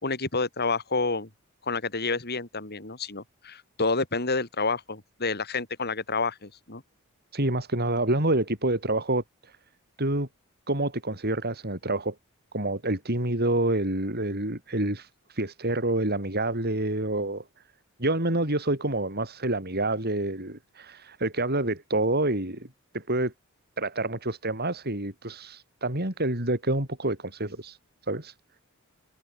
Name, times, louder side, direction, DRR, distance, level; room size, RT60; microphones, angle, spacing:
voice 1, 0.0-1.3 1.7-6.8, left 3 dB, 50° left, 4.8 m, -29 dB
voice 2, 7.3-9.6 10.0-10.3 10.7-12.1 12.5-17.4 18.0-22.7 22.9-23.3 23.8-27.8 28.1-28.3, right 2 dB, 50° right, 7.9 m, -27 dB
head